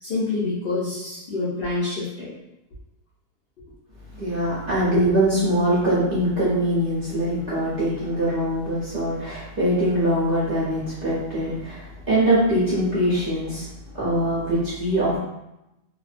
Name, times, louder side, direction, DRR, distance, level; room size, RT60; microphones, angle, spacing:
voice 1, 0.0-2.3 4.8-5.0, left 3 dB, 65° left, -8 dB, 0.5 m, -27 dB
voice 2, 4.2-13.7 13.9-15.2, right 1 dB, 45° right, -9 dB, 0.7 m, -22 dB
2.6 x 2.2 x 2.4 m, 0.91 s
omnidirectional pair, 1.7 m